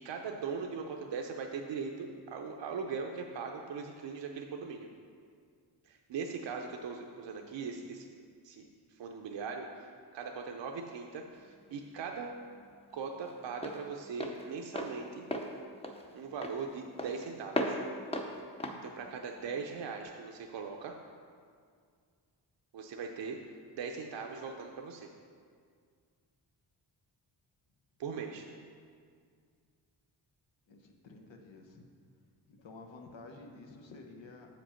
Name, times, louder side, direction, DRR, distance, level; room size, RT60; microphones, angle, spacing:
voice 1, 0.0-4.9 5.9-8.1 8.4-12.3 12.9-15.2 16.1-17.8 18.8-20.9 22.7-23.4 23.8-25.1 28.0-28.5, right 5 dB, 75° right, 2 dB, 0.6 m, -40 dB
Walk footsteps, 11.3-20.0, left 1 dB, 15° left, 0.6 m, -39 dB
voice 2, 30.7-31.9 32.5-34.5, left 3 dB, 85° left, 2 dB, 1.0 m, -51 dB
7.2 x 5.2 x 5.7 m, 2.1 s
wide cardioid pair, 110°, 44 cm